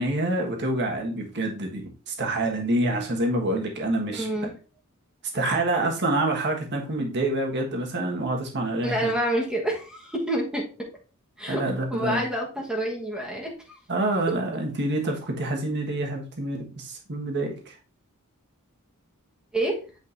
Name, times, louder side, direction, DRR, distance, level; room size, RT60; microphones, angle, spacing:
voice 1, 0.0-4.3 5.3-9.1 11.5-12.2 13.9-17.7, right 1 dB, 50° right, 2 dB, 1.5 m, -27 dB
voice 2, 4.1-4.5 8.8-10.6 11.4-11.6 11.9-13.8 19.5-19.8, right 1 dB, 5° right, -1 dB, 1.3 m, -28 dB
8.3 x 5.2 x 2.6 m, 0.36 s
head